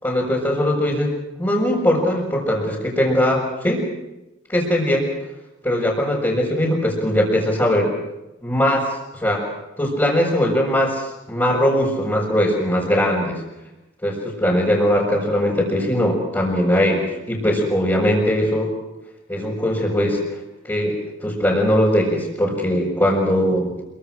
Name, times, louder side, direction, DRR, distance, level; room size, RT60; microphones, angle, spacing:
voice 1, 0.0-3.8 4.5-5.1 5.6-7.9 8.4-9.5 9.8-13.4 14.0-18.7 19.3-20.2 20.6-23.7, equal, 15° left, -7 dB, 5.8 m, -20 dB
27.5 x 24.0 x 6.4 m, 0.97 s
head